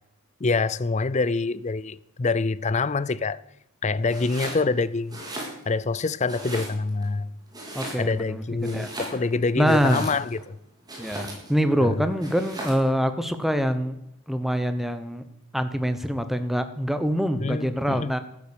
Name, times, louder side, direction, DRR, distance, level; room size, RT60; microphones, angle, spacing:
voice 1, 0.4-3.4 3.8-5.2 5.7-7.3 8.0-10.6 11.8-12.0 17.4-18.1, left 3 dB, 30° left, 0.5 m, -26 dB
Domestic sounds home sounds, 4.1-4.6 5.0-5.9 6.3-7.0 7.5-8.3 8.6-10.4 10.9-11.6 12.2-12.9, right 1 dB, 20° right, 3.9 m, -37 dB
voice 2, 7.7-8.9 9.6-10.1 11.0-14.0 14.3-15.2 15.5-18.2, equal, ahead, 1.0 m, -25 dB
13.0 x 9.9 x 8.7 m
head